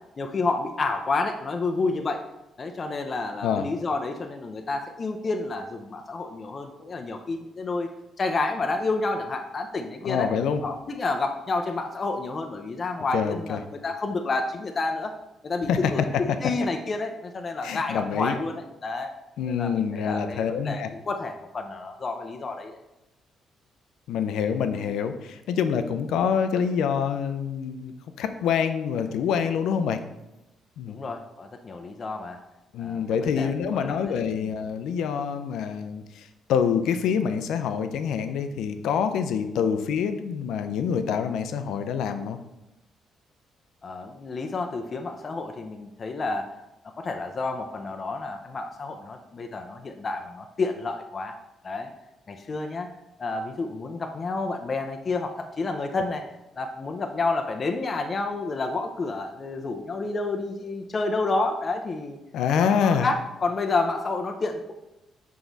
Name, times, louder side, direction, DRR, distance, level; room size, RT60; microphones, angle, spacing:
voice 1, 0.2-2.2 2.6-7.9 8.2-10.3 10.6-15.1 15.4-19.1 19.5-22.8 30.9-32.4 32.8-33.0 33.3-34.5 43.8-46.5 47.0-51.4 51.6-51.9 52.3-52.9 53.2-56.2 56.6-62.2 62.6-64.7, left 3 dB, 40° left, 4 dB, 0.6 m, -30 dB
voice 2, 10.0-10.6 13.1-13.6 15.7-16.1 17.6-18.3 19.4-20.9 24.1-30.0 30.8-31.0 32.7-42.4 62.3-63.1, left 7 dB, 85° left, 8 dB, 0.5 m, -26 dB
6.1 x 4.7 x 4.0 m, 0.93 s
cardioid pair, 90°, 0 cm